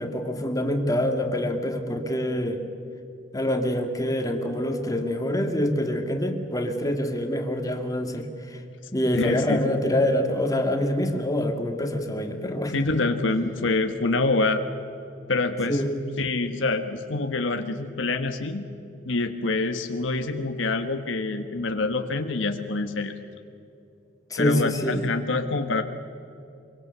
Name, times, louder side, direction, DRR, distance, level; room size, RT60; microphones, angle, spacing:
voice 1, 0.0-2.6 3.3-8.6 8.9-12.8 15.7-16.0 24.3-25.1, left 1 dB, 20° left, 4 dB, 2.1 m, -26 dB
voice 2, 9.1-9.7 12.7-14.6 15.3-15.8 16.2-18.7 19.0-23.1 24.4-25.8, left 3 dB, 80° left, 6 dB, 1.4 m, -26 dB
24.5 x 24.0 x 6.9 m, 2.6 s
head